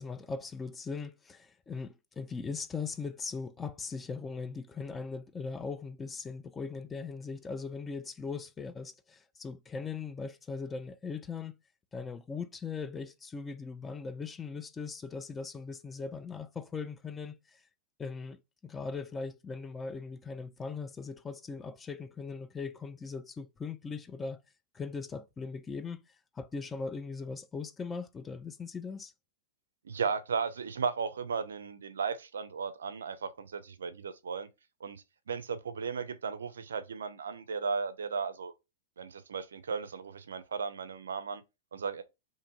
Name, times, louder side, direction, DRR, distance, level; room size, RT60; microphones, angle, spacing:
voice 1, 0.0-11.6 11.9-17.6 18.0-24.4 24.7-29.1, left 4 dB, 15° left, 0.3 m, -39 dB
voice 2, 29.9-34.5 34.8-38.5 39.0-41.4 41.7-42.0, right 5 dB, 75° right, 0.4 m, -35 dB
2.5 x 2.5 x 2.8 m
hypercardioid pair, 105°, 0 cm